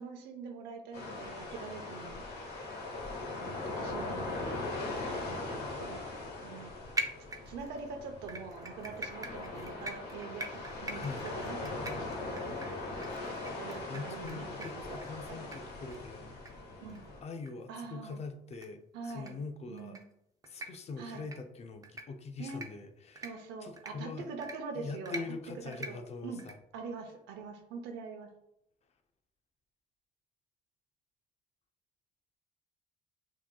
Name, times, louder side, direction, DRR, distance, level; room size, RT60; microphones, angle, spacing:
voice 1, 0.0-2.2 3.3-4.6 5.1-6.7 7.5-12.6 13.6-15.0 15.3-15.5 16.8-17.1 17.7-18.2 18.9-19.4 19.7-20.0 21.0-21.3 22.4-22.6 23.2-25.1 25.6-26.4 26.7-28.3, right 4 dB, 90° right, 5 dB, 0.8 m, -44 dB
sound 1, 0.9-17.2, left 2 dB, 65° left, 1.5 m, -40 dB
voice 2, 2.9-3.2 10.9-11.3 12.4-12.5 12.9-13.6 13.9-16.3 17.2-20.0 20.4-23.3 23.6-24.3 24.7-26.5, left 4 dB, 40° left, 7 dB, 0.5 m, -43 dB
sound 2, 7.0-7.8 8.3-14.3 14.6-14.7 15.0-15.1 15.5-15.6 15.9-16.0 16.5-16.6 16.9-17.0 17.5-17.6 18.5-18.7 19.1-19.3 19.8-20.0 20.4-20.7 21.1-21.4 21.8-22.0 22.5-22.7 23.2-23.3 23.8-23.9 24.4-24.6 25.1-25.2 25.7-25.9 26.4-26.5, right 2 dB, 20° right, 0.5 m, -40 dB
5.9 x 2.9 x 2.2 m, 0.79 s
cardioid pair, 110°, 17 cm